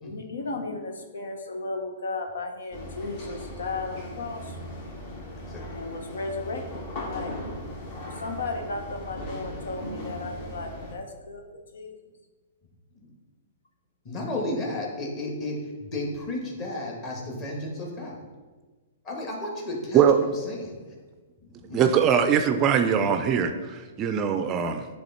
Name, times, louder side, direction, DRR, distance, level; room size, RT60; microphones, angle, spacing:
voice 1, 0.0-4.6 5.7-6.7 7.1-7.3 8.0-11.4 11.7-11.9, left 3 dB, 85° left, 4 dB, 1.0 m, -35 dB
sound 1, 2.7-10.9, left 1 dB, 45° left, 1.4 m, -38 dB
voice 2, 5.5-5.8 12.9-13.1 14.0-18.2 19.0-20.7 21.4-21.9 22.9-23.0, left 1 dB, 30° left, -1 dB, 1.6 m, -33 dB
voice 3, 21.7-24.9, right 8 dB, 25° right, 7 dB, 0.4 m, -22 dB
9.8 x 3.5 x 4.2 m, 1.3 s
hypercardioid pair, 150°, 0 cm